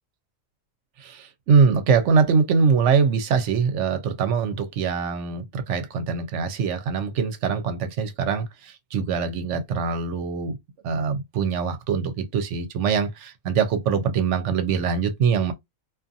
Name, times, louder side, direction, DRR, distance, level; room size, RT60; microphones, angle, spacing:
voice 1, 1.0-10.6 10.8-15.5, right 5 dB, 65° right, 0.8 m, -23 dB
2.5 x 2.5 x 2.6 m
omnidirectional pair, 1.5 m